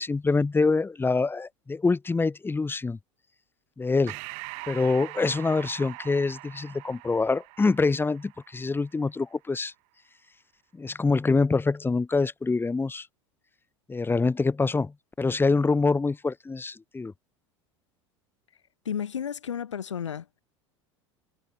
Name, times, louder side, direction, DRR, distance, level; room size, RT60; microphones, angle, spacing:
voice 1, 0.0-3.0 3.8-4.1 4.7-9.7 10.7-13.1 13.9-17.1, left 3 dB, 15° left, 4.4 m, -25 dB
Breathing, 4.1-8.9, right 32 dB, 50° right, 6.0 m, -42 dB
voice 2, 18.9-20.4, left 8 dB, 75° left, 2.1 m, -32 dB
figure-of-eight pair, 75°, 16 cm